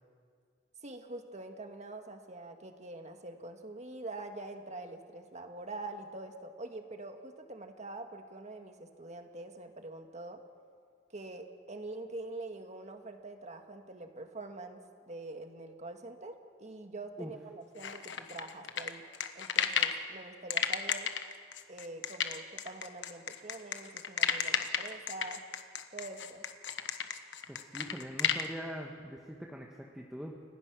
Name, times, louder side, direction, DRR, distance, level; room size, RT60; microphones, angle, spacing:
voice 1, 0.8-10.4 11.1-19.0 19.3-21.1 21.7-25.4 25.9-26.4, right 2 dB, 40° right, 5 dB, 1.7 m, -45 dB
sound 1, 17.8-20.0 20.5-28.5, left 7 dB, 85° left, 1.2 m, -32 dB
voice 2, 27.5-30.4, equal, 5° right, 0 dB, 1.3 m, -43 dB
29.0 x 16.5 x 6.2 m, 2.2 s
head